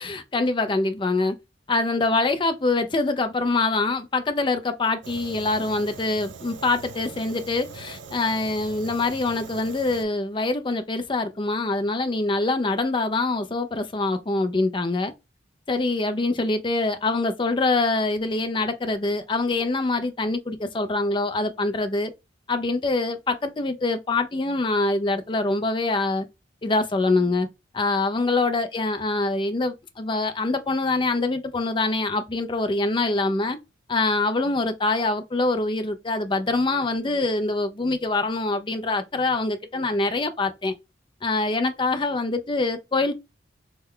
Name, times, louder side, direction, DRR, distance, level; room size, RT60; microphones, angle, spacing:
voice 1, 0.0-1.4 1.7-15.1 15.7-22.1 22.5-26.3 26.6-27.5 27.7-33.6 33.9-40.7 41.2-43.1, left 2 dB, 25° left, 0.4 m, -24 dB
Fire, 5.0-10.0, right 4 dB, 70° right, 0.5 m, -41 dB
3.2 x 2.2 x 3.6 m
head